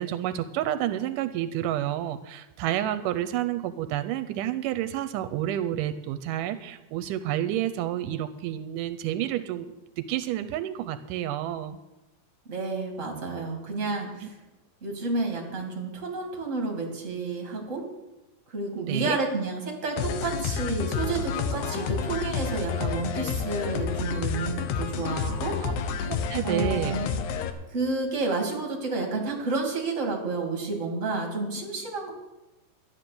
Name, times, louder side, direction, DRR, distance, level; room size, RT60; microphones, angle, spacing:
voice 1, 0.0-11.8 18.8-19.2 25.6-25.8 26.1-27.0, right 12 dB, 85° right, 10 dB, 2.2 m, -30 dB
voice 2, 12.5-14.3 14.8-17.8 18.5-25.6 26.4-27.1 27.7-32.1, right 3 dB, 25° right, 1 dB, 2.6 m, -30 dB
sound 1, 20.0-27.5, left 6 dB, 75° left, 2.2 m, -30 dB
12.5 x 10.0 x 6.8 m, 1.0 s
omnidirectional pair, 3.7 m